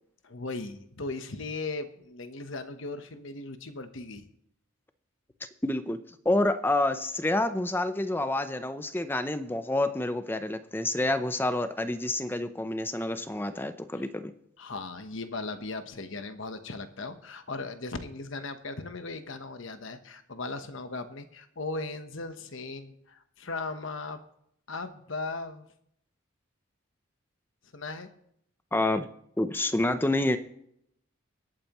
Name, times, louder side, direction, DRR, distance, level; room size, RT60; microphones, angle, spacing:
voice 1, 0.2-4.2 14.6-24.2 24.7-25.7 27.7-28.1, left 3 dB, 65° left, 9 dB, 1.1 m, -37 dB
voice 2, 5.6-6.0 6.2-14.3 28.7-29.1 29.4-30.4, left 2 dB, 10° left, 10 dB, 0.6 m, -28 dB
23.5 x 8.9 x 3.0 m, 0.73 s
head